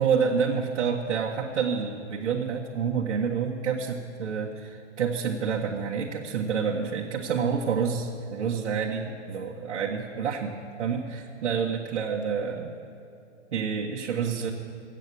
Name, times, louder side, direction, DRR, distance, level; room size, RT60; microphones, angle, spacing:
voice 1, 0.0-12.7 13.5-14.5, right 6 dB, 65° right, -3 dB, 1.5 m, -28 dB
13.5 x 9.1 x 8.3 m, 2.8 s
hypercardioid pair, 140°, 36 cm